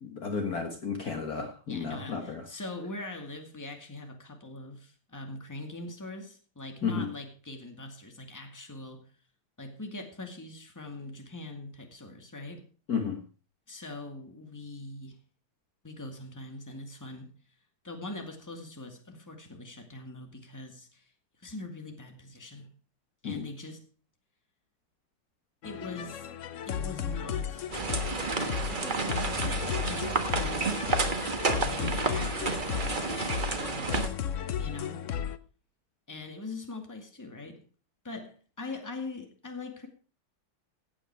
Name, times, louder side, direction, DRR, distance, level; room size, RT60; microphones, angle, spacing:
voice 1, 0.0-2.5 6.8-7.1 12.9-13.2 23.2-23.5, left 5 dB, 50° left, 5 dB, 1.8 m, -32 dB
voice 2, 1.7-9.0 9.6-12.6 13.7-15.2 15.8-17.3 17.8-21.1 21.4-22.7 23.2-23.8 25.6-26.3 26.7-27.7 28.4-29.0 29.4-30.9 31.7-32.7 33.6-34.2 34.6-35.0 36.1-37.6 38.0-39.9, left 2 dB, 10° left, 4 dB, 2.1 m, -42 dB
sound 1, 25.6-35.4, left 9 dB, 70° left, 0.7 m, -34 dB
sound 2, 27.7-34.1, right 4 dB, 30° right, 1.2 m, -30 dB
16.5 x 8.8 x 4.7 m, 0.36 s
omnidirectional pair, 2.3 m